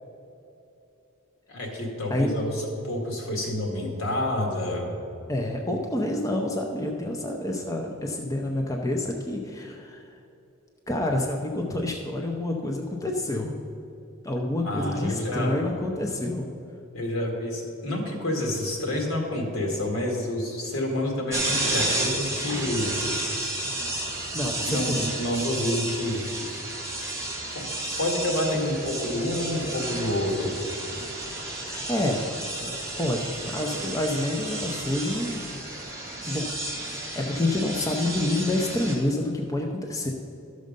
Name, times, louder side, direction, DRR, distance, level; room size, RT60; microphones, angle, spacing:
voice 1, 1.5-4.9 14.6-15.7 16.9-22.9 23.5-23.8 24.6-26.3 27.5-27.7 28.0-30.5, left 1 dB, 70° left, 0 dB, 2.2 m, -28 dB
voice 2, 5.3-10.1 10.9-13.6 14.2-16.5 24.1-25.1 31.6-32.2 33.0-35.5 36.3-36.5 36.8-40.1, left 1 dB, 15° left, 1 dB, 0.6 m, -28 dB
sound 1, 21.3-39.0, right 2 dB, 15° right, 2.2 m, -32 dB
12.0 x 6.4 x 5.3 m, 2.8 s
head